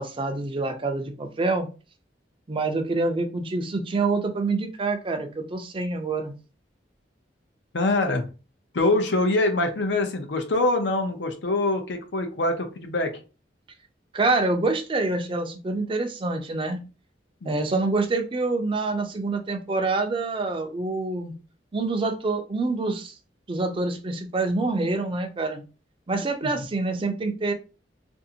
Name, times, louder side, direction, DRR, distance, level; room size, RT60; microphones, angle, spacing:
voice 1, 0.0-1.7 2.5-6.3 14.1-16.8 17.5-21.3 21.7-23.2 23.5-25.6 26.1-27.5, right 3 dB, 30° right, 5 dB, 0.4 m, -26 dB
voice 2, 7.7-8.2 8.7-13.1 17.4-17.8 26.4-26.5, left 2 dB, 75° left, 5 dB, 0.6 m, -24 dB
2.6 x 2.5 x 2.7 m, 0.33 s
head